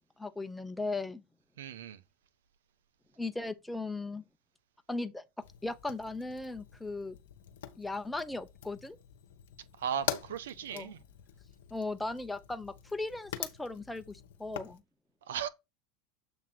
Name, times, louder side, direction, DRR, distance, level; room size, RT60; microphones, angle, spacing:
voice 1, 0.2-1.2 3.2-4.2 4.9-5.2 5.6-7.2 7.8-9.0 10.7-10.9 11.7-14.8, left 2 dB, 5° left, 0.9 m, -37 dB
voice 2, 1.6-2.0 9.8-11.0 15.3-15.5, right 8 dB, 80° right, 0.8 m, -36 dB
Fire, 5.4-14.8, left 11 dB, 75° left, 0.9 m, -44 dB
7.4 x 3.0 x 5.7 m
hypercardioid pair, 85°, 0 cm